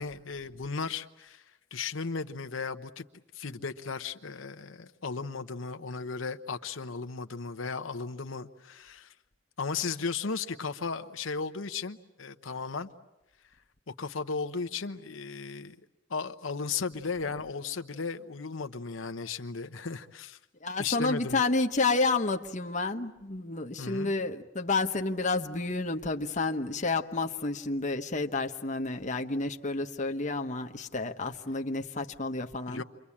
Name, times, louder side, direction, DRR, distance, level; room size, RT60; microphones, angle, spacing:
voice 1, 0.0-1.4 1.7-3.0 3.3-9.1 9.6-12.9 13.9-15.7 16.1-20.4 20.8-21.4 23.8-24.1 32.7-32.8, left 4 dB, 90° left, 8 dB, 1.0 m, -35 dB
voice 2, 20.6-32.8, left 3 dB, 40° left, 5 dB, 1.1 m, -30 dB
28.5 x 23.5 x 8.6 m, 0.93 s
head